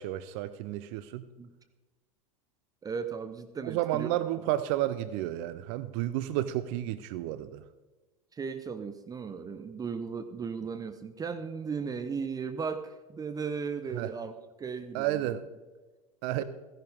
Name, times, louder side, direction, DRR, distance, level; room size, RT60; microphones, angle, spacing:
voice 1, 0.0-1.3 3.6-7.6 13.9-14.1 14.9-15.4 16.2-16.4, right 14 dB, 55° right, 15 dB, 0.6 m, -31 dB
voice 2, 2.8-4.1 8.3-15.4 16.4-16.5, right 5 dB, 20° right, 10 dB, 0.8 m, -36 dB
16.0 x 11.0 x 3.5 m, 1.2 s
hypercardioid pair, 85°, 18 cm